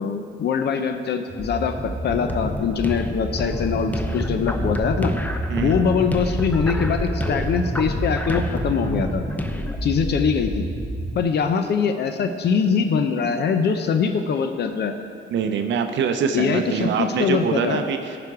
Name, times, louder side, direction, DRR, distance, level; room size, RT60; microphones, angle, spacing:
voice 1, 0.0-5.1 5.6-9.2 9.8-10.6 11.2-14.9 16.3-17.8, left 6 dB, 55° left, 7 dB, 0.5 m, -23 dB
sound 1, 1.3-11.2, right 1 dB, 10° right, 2.2 m, -30 dB
sound 2, 2.1-9.8, left 1 dB, 10° left, 0.6 m, -29 dB
voice 2, 15.3-18.2, right 6 dB, 70° right, 7 dB, 0.6 m, -24 dB
11.5 x 5.1 x 4.8 m, 2.3 s
cardioid pair, 90°, 20 cm